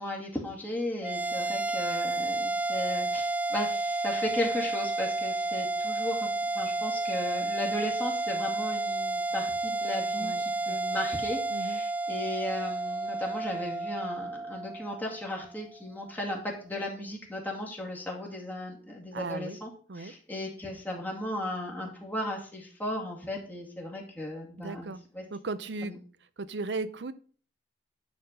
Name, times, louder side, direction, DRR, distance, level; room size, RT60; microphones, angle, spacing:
voice 1, 0.0-6.3 6.5-19.7 19.9-25.2 25.8-26.0, left 1 dB, 10° left, -1 dB, 2.2 m, -36 dB
sound 1, 1.0-15.6, right 2 dB, 10° right, 0.5 m, -31 dB
voice 2, 10.1-11.0 11.5-11.8 19.1-19.6 19.9-20.1 24.6-25.0 25.3-25.9 26.4-27.1, right 3 dB, 80° right, 14 dB, 0.7 m, -36 dB
10.5 x 4.5 x 5.5 m, 0.42 s
head